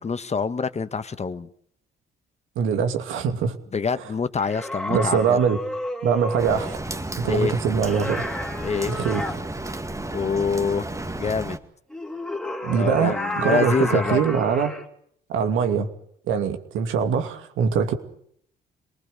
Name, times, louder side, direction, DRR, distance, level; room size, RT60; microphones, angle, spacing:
voice 1, 0.0-1.5 3.7-5.4 7.2-7.5 8.6-9.0 10.1-10.9 11.2-11.6 12.8-14.2, left 5 dB, 35° left, 12 dB, 1.4 m, -26 dB
voice 2, 2.6-3.6 4.0-4.1 4.9-5.6 6.0-6.8 7.2-8.2 8.9-9.2 12.6-14.7 15.3-15.9 16.3-18.0, right 6 dB, 85° right, 7 dB, 2.7 m, -23 dB
sound 1, 4.4-6.8 7.8-9.4 11.9-14.8, left 1 dB, 5° left, 3.3 m, -31 dB
Rain, 6.4-11.6, right 2 dB, 15° right, 2.2 m, -33 dB
26.5 x 20.0 x 6.7 m, 0.66 s
cardioid pair, 90°, 20 cm